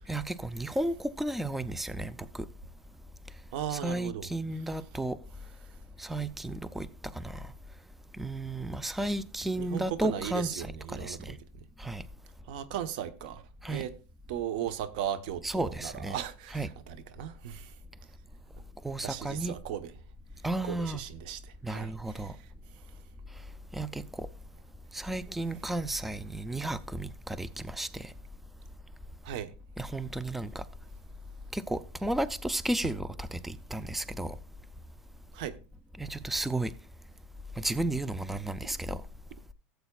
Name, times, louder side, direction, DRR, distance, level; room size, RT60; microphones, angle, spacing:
voice 1, 0.1-2.5 3.7-5.2 6.0-6.9 7.1-7.5 8.1-11.4 11.8-12.0 13.6-13.9 15.4-16.2 16.5-16.7 18.8-19.5 20.4-21.0 21.6-22.4 23.3-23.4 23.7-24.3 24.9-28.1 29.8-30.6 31.5-34.4 36.0-36.7 37.6-39.0, right 1 dB, 5° right, 0.4 m, -33 dB
voice 2, 3.5-4.3 9.5-11.4 12.5-13.9 14.3-17.7 19.0-19.9 20.6-21.4 21.7-22.3 29.2-29.5 35.3-35.5, right 10 dB, 70° right, 0.9 m, -37 dB
16.0 x 8.0 x 2.3 m
supercardioid pair, 135°, 5 cm